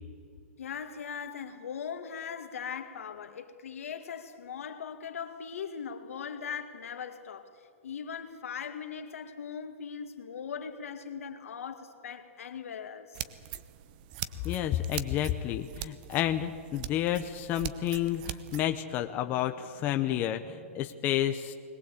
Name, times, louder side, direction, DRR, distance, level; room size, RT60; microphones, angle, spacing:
voice 1, 0.6-7.5 7.8-13.2, left 7 dB, 80° left, 2.2 m, -40 dB
sound 1, 13.1-18.7, right 12 dB, 40° right, 0.9 m, -42 dB
voice 2, 14.4-21.5, left 12 dB, 25° left, 0.8 m, -30 dB
21.5 x 19.0 x 8.4 m
hypercardioid pair, 155°, 7 cm